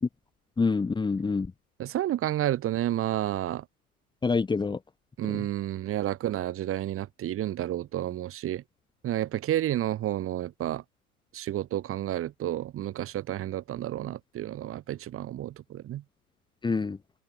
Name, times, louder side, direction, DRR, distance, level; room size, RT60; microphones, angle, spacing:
voice 1, 0.6-1.5 4.2-4.8 5.3-5.5 16.6-17.0, left 4 dB, 10° left, 3.0 m, -26 dB
voice 2, 1.8-3.6 5.2-8.6 9.0-10.8 11.3-16.0, right 12 dB, 30° right, 7.9 m, -30 dB
open air
hypercardioid pair, 110°, 46 cm